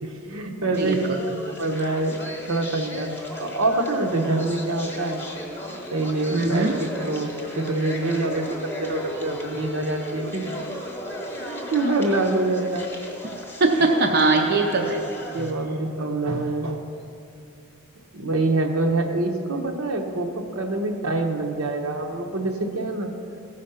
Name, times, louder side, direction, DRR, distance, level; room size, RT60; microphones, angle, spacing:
voice 1, 0.0-5.2 5.7-6.7 7.0-10.5 11.3-12.9 15.3-16.8 18.1-23.1, right 2 dB, 80° right, 3 dB, 0.9 m, -26 dB
sound 1, 0.7-15.5, equal, 10° left, 1.0 m, -35 dB
voice 2, 0.7-1.3 6.3-6.7 13.2-15.0, right 3 dB, 50° right, 2 dB, 0.6 m, -22 dB
15.0 x 5.1 x 5.6 m, 2.6 s
head